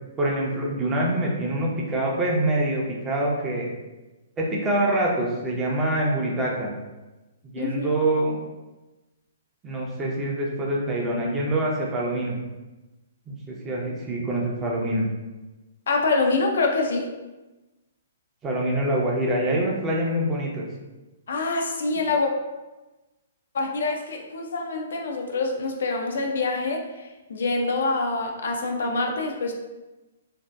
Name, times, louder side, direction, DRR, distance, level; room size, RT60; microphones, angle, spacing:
voice 1, 0.2-3.7 4.4-6.7 7.4-8.3 9.6-12.4 13.3-15.0 18.4-20.7, right 1 dB, 20° right, -3 dB, 0.5 m, -25 dB
voice 2, 7.6-7.9 15.9-17.1 21.3-22.3 23.5-29.5, left 3 dB, 65° left, 2 dB, 0.3 m, -25 dB
2.6 x 2.1 x 2.2 m, 1.1 s
figure-of-eight pair, 120°, 0 cm